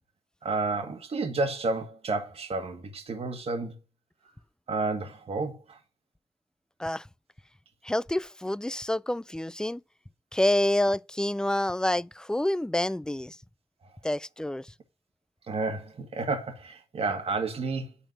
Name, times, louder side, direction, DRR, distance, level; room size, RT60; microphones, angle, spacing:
voice 1, 0.4-3.7 4.7-5.8 15.5-17.9, right 3 dB, 50° right, 1.7 m, -31 dB
voice 2, 7.8-9.8 10.3-13.4 14.0-14.7, left 1 dB, 5° left, 0.4 m, -27 dB
10.0 x 4.4 x 7.6 m
hypercardioid pair, 45°, 13 cm